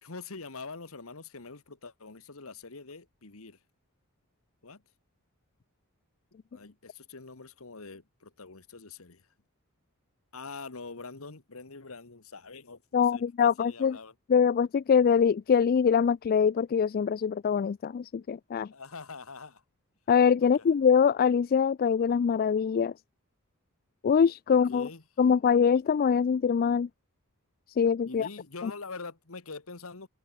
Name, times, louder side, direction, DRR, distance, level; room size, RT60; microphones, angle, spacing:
voice 1, 0.0-3.6 4.6-4.8 6.5-9.2 10.3-13.2 13.6-14.1 18.7-19.6 20.4-20.6 24.5-25.0 28.1-30.1, left 4 dB, 70° left, 1.6 m, -44 dB
voice 2, 12.9-14.0 14.3-18.7 20.1-22.9 24.0-24.9 25.2-26.9 27.7-28.3 28.6-28.7, left 7 dB, 45° left, 0.3 m, -24 dB
open air
head